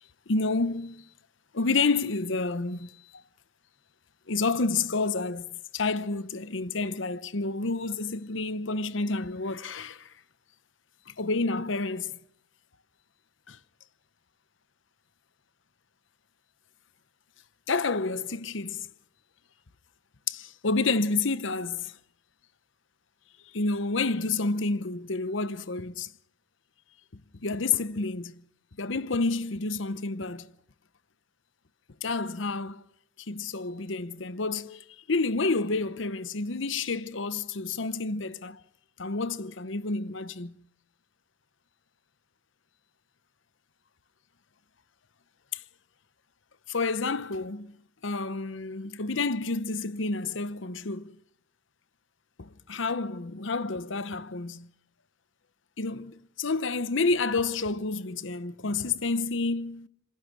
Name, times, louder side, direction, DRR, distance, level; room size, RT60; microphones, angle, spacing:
voice 1, 0.3-1.1 1.5-2.9 4.3-10.1 11.1-12.2 13.5-13.6 17.7-18.9 20.3-21.9 23.5-26.1 27.1-28.3 28.8-30.5 32.0-32.8 33.3-38.6 39.0-40.5 45.5-45.6 46.7-47.7 48.0-51.1 52.4-54.7 55.8-59.9, left 3 dB, 70° left, 0.9 m, -29 dB
27.0 x 22.5 x 6.3 m
head